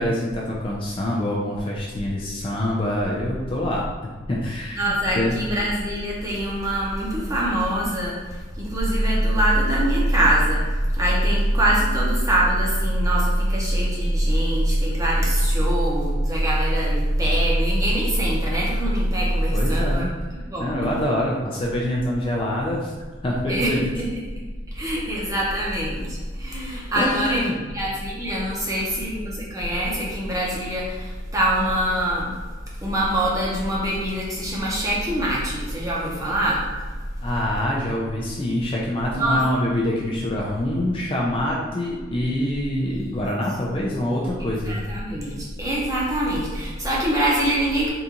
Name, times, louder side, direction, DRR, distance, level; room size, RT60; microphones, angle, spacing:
voice 1, 0.0-3.8 4.3-5.4 19.5-20.2 20.6-22.9 23.2-23.8 26.9-27.5 37.2-44.8, left 1 dB, 25° left, -3 dB, 0.3 m, -25 dB
voice 2, 4.8-10.6 11.0-20.1 20.5-20.9 23.5-24.0 24.7-27.4 27.7-32.3 32.8-36.6 39.1-39.4 42.9-43.3 44.4-47.9, right 1 dB, 15° right, -5 dB, 0.7 m, -25 dB
sound 1, 8.8-19.9, right 1 dB, 80° right, 0.5 m, -23 dB
3.8 x 2.4 x 2.8 m, 1.3 s
head